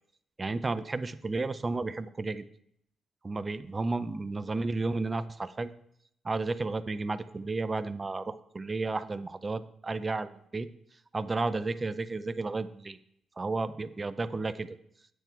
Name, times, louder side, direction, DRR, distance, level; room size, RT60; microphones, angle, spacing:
voice 1, 0.4-2.4 3.2-5.7 6.2-10.7 11.1-13.0 13.4-14.8, right 3 dB, 25° right, 12 dB, 0.5 m, -32 dB
8.8 x 8.1 x 4.6 m, 0.70 s
cardioid pair, 120°, 0 cm